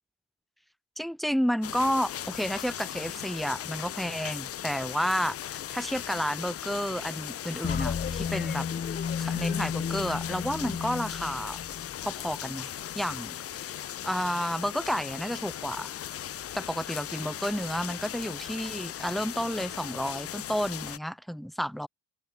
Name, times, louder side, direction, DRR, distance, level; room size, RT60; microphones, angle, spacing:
voice 1, 1.0-8.7 9.2-11.6 12.0-13.4 14.0-16.0 16.5-21.9, equal, ahead, 0.9 m, -31 dB
sound 1, 1.6-21.0, left 11 dB, 50° left, 0.7 m, -38 dB
sound 2, 7.6-12.3, left 6 dB, 35° left, 0.9 m, -33 dB
open air
cardioid pair, 90°, 30 cm